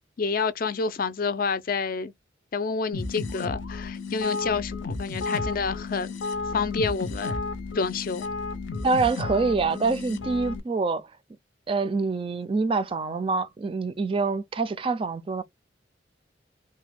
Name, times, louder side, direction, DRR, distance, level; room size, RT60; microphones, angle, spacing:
voice 1, 0.2-2.1 2.5-6.1 6.5-7.3 7.7-8.3, left 4 dB, 50° left, 0.4 m, -28 dB
sound 1, 2.9-10.6, left 3 dB, 85° left, 0.7 m, -32 dB
voice 2, 8.8-11.2 11.7-15.4, right 4 dB, 30° right, 0.3 m, -26 dB
3.2 x 2.1 x 3.4 m
head